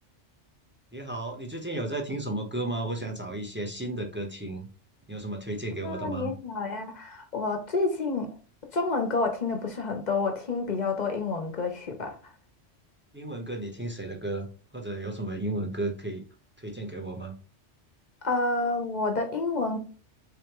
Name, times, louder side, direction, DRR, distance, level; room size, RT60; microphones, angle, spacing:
voice 1, 0.9-4.7 5.1-6.3 13.1-14.5 14.7-16.2 16.6-17.3, right 2 dB, 15° right, 0.6 m, -33 dB
voice 2, 5.8-8.3 8.7-12.2 18.2-19.8, left 3 dB, 45° left, 0.7 m, -29 dB
3.6 x 3.3 x 2.9 m
omnidirectional pair, 1.2 m